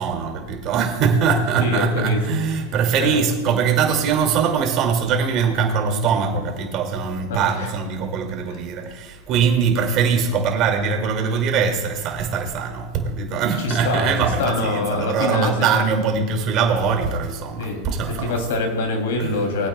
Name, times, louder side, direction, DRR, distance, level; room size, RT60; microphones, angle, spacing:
voice 1, 0.0-18.4 19.2-19.4, right 6 dB, 45° right, 3 dB, 2.2 m, -22 dB
voice 2, 1.6-2.2 3.0-3.2 7.3-7.7 13.6-14.1 14.4-15.5 17.6-17.8 18.1-19.7, left 3 dB, 75° left, 3 dB, 2.6 m, -24 dB
20.5 x 8.7 x 2.2 m, 1.3 s
hypercardioid pair, 115°, 0 cm